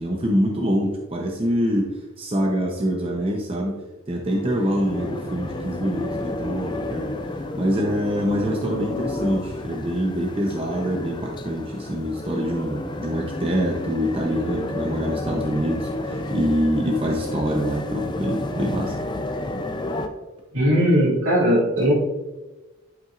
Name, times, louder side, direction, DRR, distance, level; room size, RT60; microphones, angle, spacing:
voice 1, 0.0-19.0, equal, 25° right, 0 dB, 0.7 m, -25 dB
sound 1, 4.3-20.1, left 2 dB, 20° left, 0.5 m, -31 dB
voice 2, 20.5-21.9, equal, 70° right, -5 dB, 2.5 m, -18 dB
11.0 x 5.9 x 2.5 m, 1.1 s
head